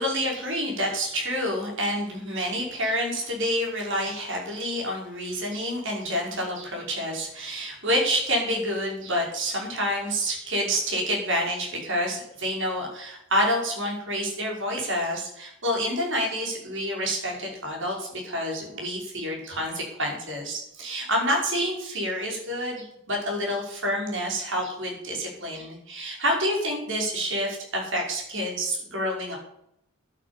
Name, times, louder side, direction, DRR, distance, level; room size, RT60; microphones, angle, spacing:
voice 1, 0.0-29.4, equal, 60° right, -1 dB, 5.8 m, -28 dB
12.0 x 9.4 x 8.9 m, 0.78 s
head